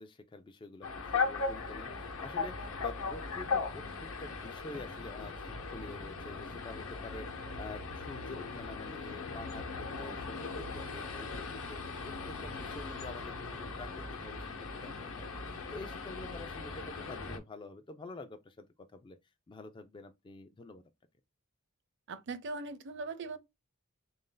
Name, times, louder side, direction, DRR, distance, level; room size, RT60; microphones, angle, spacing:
voice 1, 0.0-19.2 19.5-20.8, left 3 dB, 20° left, 0.3 m, -48 dB
sound 1, 0.8-17.4, left 4 dB, 65° left, 0.9 m, -38 dB
voice 2, 22.1-23.4, right 3 dB, 55° right, 0.6 m, -40 dB
3.6 x 2.6 x 3.8 m
head